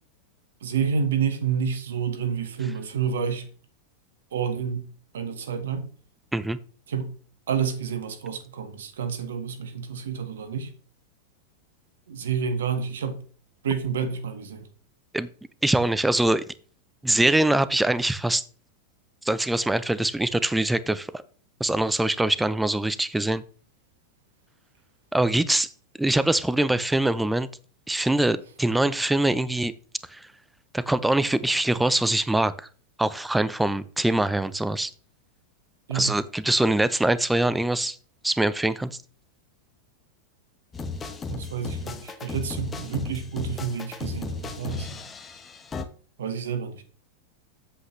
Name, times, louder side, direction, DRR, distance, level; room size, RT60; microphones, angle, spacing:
voice 1, 0.6-3.5 4.3-4.8 5.1-5.9 6.9-7.2 7.5-10.7 12.1-13.2 13.6-14.7 35.9-36.2 41.3-45.0 46.2-46.8, right 7 dB, 75° right, 1.5 m, -29 dB
voice 2, 15.6-16.4 17.0-18.4 19.2-21.2 21.6-23.4 25.1-25.7 26.0-27.5 27.9-29.7 30.1-30.3 30.7-32.7 33.0-34.9 35.9-38.0 38.2-38.9, right 1 dB, 5° right, 0.6 m, -23 dB
sound 1, 40.7-45.8, left 4 dB, 20° left, 1.1 m, -35 dB
8.1 x 7.7 x 3.2 m
hypercardioid pair, 100°, 0 cm